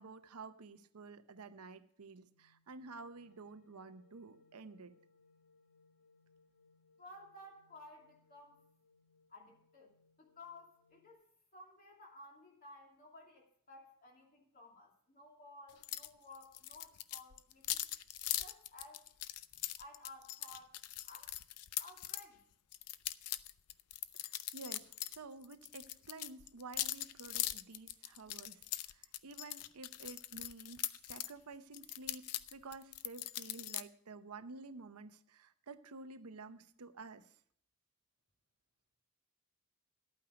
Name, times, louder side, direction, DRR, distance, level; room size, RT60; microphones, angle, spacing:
voice 1, 0.0-4.9 24.2-37.3, right 3 dB, 85° right, 10 dB, 0.8 m, -51 dB
sound 1, 2.2-11.1, left 3 dB, 60° left, 2.1 m, -71 dB
voice 2, 7.0-8.6 9.3-9.9 10.2-11.2 11.5-17.8 18.4-19.1 19.5-20.8 21.0-21.3 21.8-22.4, left 2 dB, 40° left, 0 dB, 2.6 m, -56 dB
sound 2, 15.8-16.1 16.3-22.2 22.7-25.2 25.4-31.3 31.7-33.8, left 14 dB, 90° left, 0.5 m, -41 dB
12.0 x 8.9 x 5.1 m, 0.64 s
head